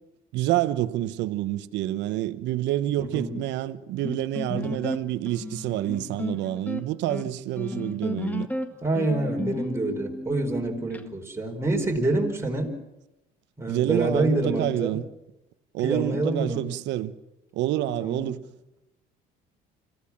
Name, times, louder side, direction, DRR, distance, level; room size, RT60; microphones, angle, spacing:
voice 1, 0.3-8.5 13.7-15.0 15.7-17.1 17.5-18.4, right 14 dB, 70° right, 1.1 m, -28 dB
voice 2, 3.0-3.4 4.5-4.9 8.8-12.7 13.6-15.0 15.8-16.7 18.0-18.3, right 2 dB, 15° right, 4.7 m, -27 dB
sound 1, 4.0-11.0, left 2 dB, 10° left, 1.8 m, -34 dB
26.0 x 15.5 x 7.4 m
supercardioid pair, 75°, 19 cm